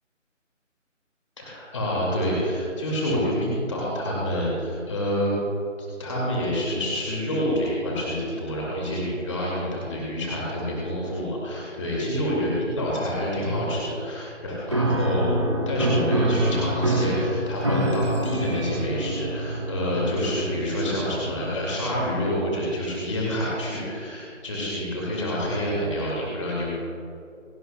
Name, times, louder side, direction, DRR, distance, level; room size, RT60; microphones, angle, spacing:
voice 1, 1.4-5.3 5.8-15.4 15.7-26.7, equal, 25° left, -4 dB, 2.2 m, -27 dB
Piano, 14.7-23.2, right 1 dB, 25° right, 0.8 m, -27 dB
28.0 x 11.0 x 2.3 m, 2.5 s
figure-of-eight pair, 160°, 38 cm